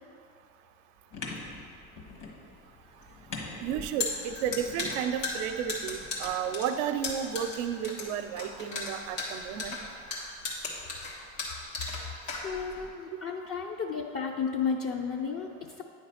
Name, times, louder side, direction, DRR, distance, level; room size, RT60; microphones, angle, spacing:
sound 1, 1.1-6.4, left 3 dB, 55° left, 1.6 m, -44 dB
voice 1, 3.6-9.8, right 8 dB, 70° right, 9 dB, 0.6 m, -32 dB
sound 2, 3.7-12.9, left 3 dB, 80° left, 1.6 m, -36 dB
voice 2, 12.4-15.8, left 6 dB, 35° left, 1 dB, 0.6 m, -33 dB
9.2 x 3.3 x 5.7 m, 2.3 s
hypercardioid pair, 75°, 38 cm